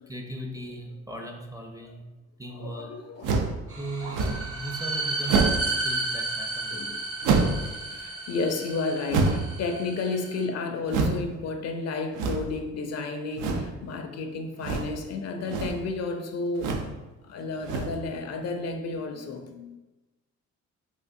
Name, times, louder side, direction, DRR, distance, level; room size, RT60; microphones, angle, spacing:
voice 1, 0.1-2.0 2.4-2.9 3.8-7.0, right 1 dB, 10° right, 1 dB, 0.4 m, -38 dB
voice 2, 2.5-3.4 6.7-7.0 7.6-16.8 17.2-19.8, left 3 dB, 60° left, 5 dB, 0.5 m, -32 dB
sound 1, 3.2-3.6 4.1-4.5 5.2-5.7 7.2-7.7 9.1-9.6 10.9-11.2 12.1-12.6 13.4-13.7 14.6-15.0 15.4-15.8 16.6-16.9 17.6-18.1, right 4 dB, 85° right, 0.5 m, -26 dB
sound 2, 3.7-10.4, right 2 dB, 45° right, 0.8 m, -32 dB
3.6 x 2.4 x 2.6 m, 1.1 s
cardioid pair, 90°, 30 cm